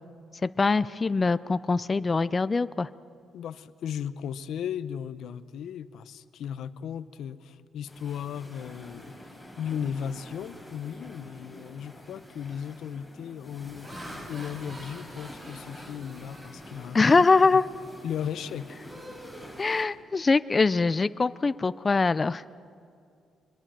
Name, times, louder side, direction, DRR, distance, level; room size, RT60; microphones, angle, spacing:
voice 1, 0.4-2.9 16.9-17.6 19.6-22.4, left 4 dB, 30° left, 15 dB, 0.5 m, -23 dB
voice 2, 3.3-9.1 9.6-13.9 14.3-17.3 18.0-18.8, left 8 dB, 75° left, 13 dB, 0.8 m, -36 dB
sound 1, 7.9-19.8, left 1 dB, 5° right, 5.7 m, -46 dB
Laughter, 11.7-12.0 12.6-12.9 13.5-17.3 17.7-18.0 18.4-20.3, right 1 dB, 30° right, 3.9 m, -48 dB
23.5 x 21.5 x 7.6 m, 2.3 s
cardioid pair, 90°, 0 cm